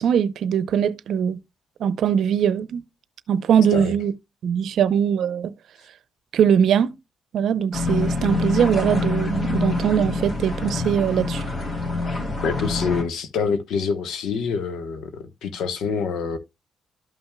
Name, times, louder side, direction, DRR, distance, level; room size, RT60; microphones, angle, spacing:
voice 1, 0.0-1.4 1.8-2.8 3.3-4.1 4.4-5.5 6.3-6.9 7.3-11.4, right 8 dB, 75° right, 0.7 m, -21 dB
sound 1, 7.7-13.0, left 3 dB, 55° left, 3.2 m, -26 dB
voice 2, 12.4-16.4, left 5 dB, 85° left, 1.1 m, -26 dB
13.0 x 5.7 x 2.2 m
cardioid pair, 90°, 0 cm